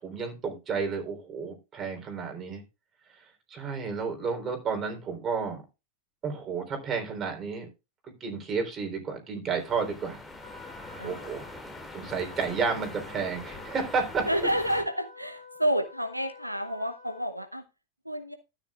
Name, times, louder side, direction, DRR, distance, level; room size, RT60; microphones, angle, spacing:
voice 1, 0.0-2.6 3.5-5.6 6.2-7.7 8.2-10.2 11.0-11.4 11.9-14.5, right 5 dB, 25° right, 3 dB, 3.6 m, -31 dB
sound 1, 9.5-14.8, left 2 dB, 10° left, 2.2 m, -43 dB
Trumpet, 10.4-17.3, left 3 dB, 55° left, 6.9 m, -50 dB
voice 2, 14.3-17.6 18.1-18.3, equal, 90° right, 8 dB, 0.9 m, -29 dB
13.0 x 9.4 x 2.4 m, 0.27 s
figure-of-eight pair, 90°, 0 cm